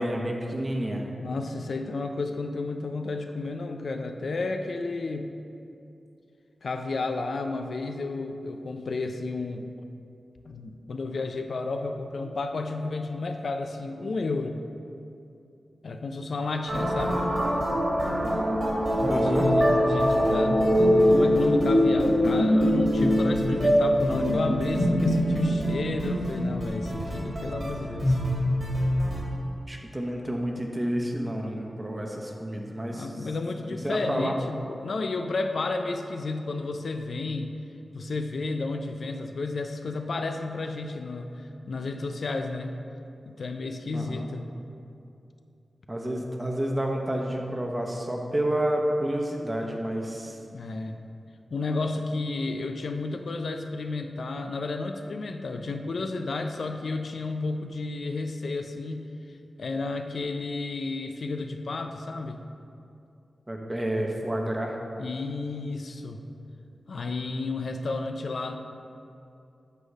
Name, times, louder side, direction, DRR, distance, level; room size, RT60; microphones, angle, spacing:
voice 1, 0.0-1.1 19.1-19.6 29.7-33.1 33.7-34.4 43.9-44.3 45.9-50.4 63.5-64.8, right 1 dB, 20° right, 1 dB, 1.0 m, -29 dB
voice 2, 1.2-5.3 6.6-9.7 10.5-14.6 15.8-17.2 19.2-28.2 32.9-37.5 37.9-42.8 43.3-44.5 50.5-51.0 51.5-59.0 59.6-62.4 65.0-66.2 66.9-68.6, left 3 dB, 70° left, 5 dB, 0.4 m, -32 dB
sound 1, 16.7-29.2, equal, 50° right, 1.9 m, -23 dB
8.1 x 4.0 x 6.3 m, 2.6 s
wide cardioid pair, 70°, 0 cm